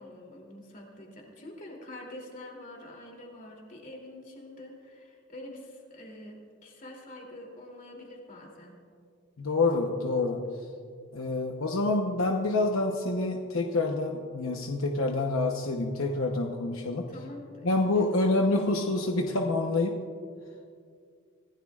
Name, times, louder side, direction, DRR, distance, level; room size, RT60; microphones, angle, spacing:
voice 1, 0.0-8.8 17.0-18.2, left 1 dB, 40° left, -1 dB, 2.9 m, -46 dB
voice 2, 9.4-10.4 11.1-17.1 17.6-19.9, left 2 dB, 80° left, 2 dB, 1.0 m, -27 dB
25.0 x 16.0 x 2.5 m, 2.2 s
head